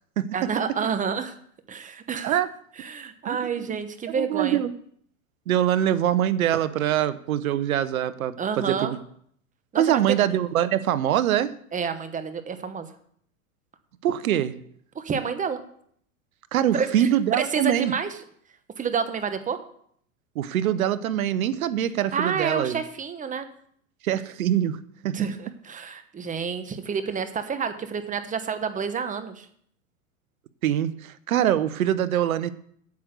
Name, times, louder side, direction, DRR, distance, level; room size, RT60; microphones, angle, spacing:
voice 1, 0.3-1.3 1.7-2.4 2.8-4.6 8.4-8.9 9.7-10.2 11.7-12.9 14.9-15.6 16.7-17.1 17.4-18.2 18.8-19.6 22.1-23.5 25.1-29.5, right 6 dB, 20° right, 10 dB, 1.0 m, -29 dB
voice 2, 4.2-4.7 5.5-9.0 9.8-11.6 14.0-14.6 16.5-17.9 20.4-22.8 24.0-25.3 30.6-32.5, right 11 dB, 80° right, 14 dB, 0.9 m, -24 dB
8.5 x 6.2 x 8.1 m, 0.64 s
hypercardioid pair, 110°, 42 cm